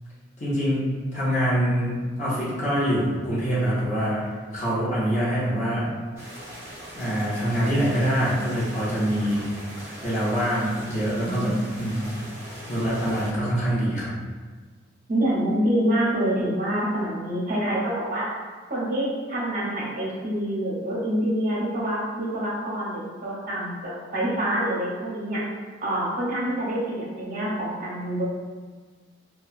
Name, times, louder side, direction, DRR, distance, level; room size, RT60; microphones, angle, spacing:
voice 1, 0.4-0.9 1.1-4.3 4.5-5.9 7.0-9.4 10.0-12.3 12.7-14.1, equal, 40° left, -9 dB, 0.7 m, -25 dB
sound 1, 6.2-13.3, equal, 15° right, 0.9 m, -40 dB
voice 2, 11.1-11.8 15.1-18.3 18.7-25.4 25.8-28.2, right 1 dB, 45° right, -6 dB, 0.8 m, -26 dB
2.8 x 2.3 x 2.4 m, 1.5 s
head